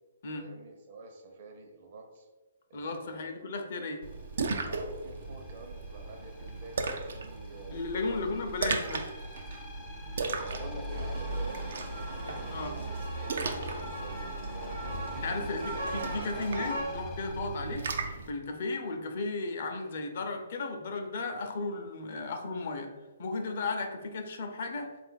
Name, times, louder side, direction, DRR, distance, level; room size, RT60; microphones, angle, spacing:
voice 1, 0.3-2.3 2.7-3.5 4.6-8.7 10.4-13.0 13.3-15.6, right 3 dB, 50° right, 2 dB, 0.8 m, -49 dB
voice 2, 2.7-4.0 7.7-9.1 12.4-12.8 15.2-17.9 18.3-22.9 23.2-24.9, left 3 dB, 55° left, 4 dB, 0.6 m, -35 dB
sound 1, 4.0-18.6, left 3 dB, 15° left, 0.5 m, -48 dB
Splash splatter, 4.0-18.3, right 3 dB, 70° right, 0.5 m, -37 dB
sound 2, 10.9-16.8, right 1 dB, 85° right, 0.9 m, -40 dB
3.8 x 2.5 x 4.0 m, 1.2 s
hypercardioid pair, 145°, 0 cm